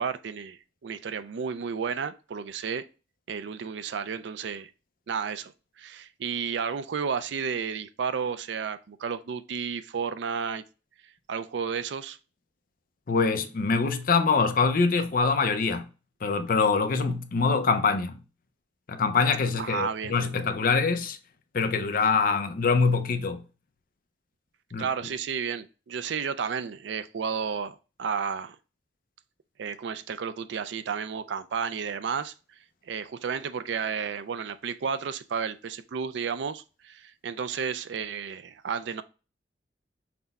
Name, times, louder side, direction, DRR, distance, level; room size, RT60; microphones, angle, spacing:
voice 1, 0.0-2.9 3.3-4.7 5.1-5.5 5.8-10.6 11.3-12.2 19.6-20.3 24.8-28.6 29.6-32.3 32.9-39.0, right 6 dB, 70° right, 0.4 m, -32 dB
voice 2, 13.1-15.9 16.2-18.2 18.9-21.2 21.5-23.4 24.7-24.8, left 4 dB, 45° left, 0.5 m, -24 dB
5.9 x 2.2 x 4.0 m
head